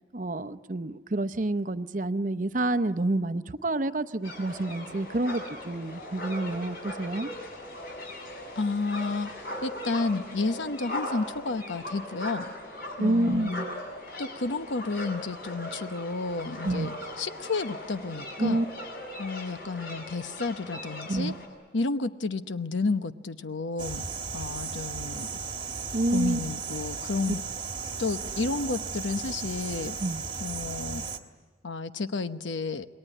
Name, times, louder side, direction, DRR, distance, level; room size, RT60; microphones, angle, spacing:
voice 1, 0.1-7.3 13.0-13.8 16.6-16.9 18.4-18.7 21.1-21.4 25.9-26.4 30.0-30.2, right 2 dB, 45° right, 10 dB, 0.7 m, -28 dB
sound 1, 4.2-21.5, left 1 dB, 55° left, 6.8 m, -39 dB
voice 2, 8.6-9.3 9.6-12.5 13.0-13.7 14.2-18.6 19.2-21.3 21.7-24.0 24.3-25.3 26.1-27.4 28.0-30.0 30.4-31.0 31.6-32.9, left 3 dB, 85° left, 10 dB, 1.0 m, -31 dB
sound 2, 23.8-31.2, right 5 dB, 25° right, 1.4 m, -35 dB
27.5 x 21.0 x 9.9 m, 1.5 s
head